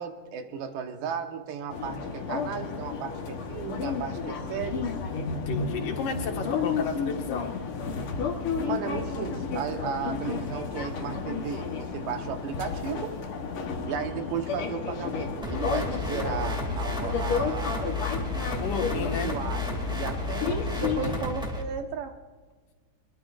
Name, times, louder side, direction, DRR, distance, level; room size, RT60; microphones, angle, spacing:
voice 1, 0.0-4.9 8.6-13.1 13.7-18.0 18.9-22.1, right 7 dB, 85° right, 6 dB, 2.9 m, -35 dB
sound 1, 1.7-21.2, left 5 dB, 55° left, 1.8 m, -32 dB
voice 2, 5.3-7.5 13.6-14.3 18.6-19.3 21.0-21.3, left 5 dB, 70° left, 1 dB, 3.2 m, -34 dB
sound 2, 15.4-21.6, left 2 dB, ahead, 1.8 m, -33 dB
22.5 x 22.5 x 2.6 m, 1.4 s
omnidirectional pair, 3.8 m